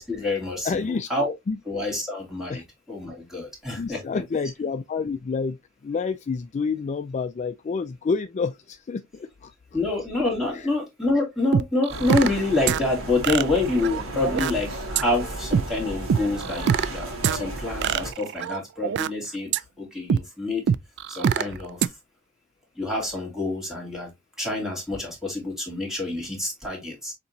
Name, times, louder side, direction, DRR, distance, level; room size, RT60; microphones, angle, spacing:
voice 1, 0.0-1.3 1.7-2.6 2.9-4.2 9.7-19.5 19.8-20.7 21.1-21.9 22.8-24.1 24.4-27.1, left 2 dB, ahead, 2.3 m, -27 dB
voice 2, 0.6-1.1 1.5-1.6 1.9-2.0 2.5-2.7 3.7-9.5 10.5-10.7, left 5 dB, 35° left, 0.3 m, -29 dB
sound 1, 11.5-12.4 12.7-12.8 13.2-14.5 14.9-15.0 15.5-15.6 16.1-16.9 17.2-17.4 17.8-19.1 19.5-19.6 20.1-20.2 20.7-21.4 21.8-21.9, right 7 dB, 55° right, 0.3 m, -23 dB
sound 2, 11.9-18.1, right 1 dB, 80° right, 1.5 m, -34 dB
6.7 x 2.9 x 2.6 m
head